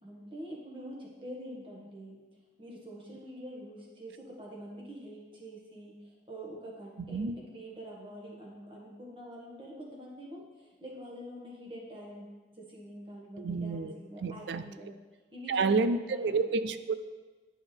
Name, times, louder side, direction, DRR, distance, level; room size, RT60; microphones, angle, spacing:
voice 1, 0.0-2.2 2.6-14.9 15.3-16.4, equal, 30° right, -3 dB, 1.6 m, -46 dB
voice 2, 7.0-7.4 13.4-14.6 15.5-16.9, right 4 dB, 85° right, 12 dB, 0.4 m, -30 dB
11.0 x 5.4 x 3.5 m, 1.3 s
head